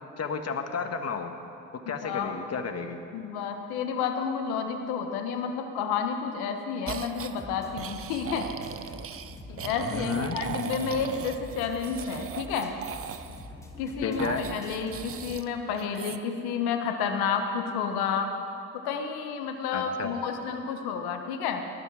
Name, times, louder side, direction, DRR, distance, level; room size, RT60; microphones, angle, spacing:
voice 1, 0.2-1.3 1.9-3.0 9.9-10.4 14.0-14.5 19.7-20.2, left 5 dB, 40° left, 6 dB, 1.5 m, -32 dB
voice 2, 1.9-2.3 3.1-8.5 9.5-12.8 13.8-18.3 18.7-21.6, left 6 dB, 70° left, 5 dB, 1.3 m, -30 dB
sound 1, 6.9-7.4 7.8-13.5 14.2-15.5 15.7-16.2, right 8 dB, 35° right, 0.7 m, -38 dB
sound 2, 7.4-15.4, left 1 dB, 5° left, 2.5 m, -45 dB
19.0 x 12.0 x 4.9 m, 2.6 s
hypercardioid pair, 60°, 39 cm